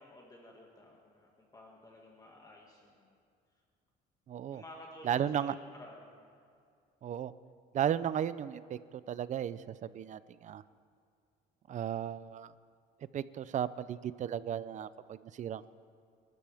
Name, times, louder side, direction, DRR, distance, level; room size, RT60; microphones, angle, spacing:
voice 1, 0.0-3.2 4.5-6.2, left 1 dB, 20° left, -1 dB, 2.0 m, -53 dB
voice 2, 4.3-4.6 5.0-5.5 7.0-7.3 7.7-8.8 9.1-10.6 11.7-12.5 13.1-15.7, right 9 dB, 45° right, 16 dB, 0.5 m, -35 dB
24.5 x 13.0 x 3.5 m, 2.3 s
cardioid pair, 110°, 17 cm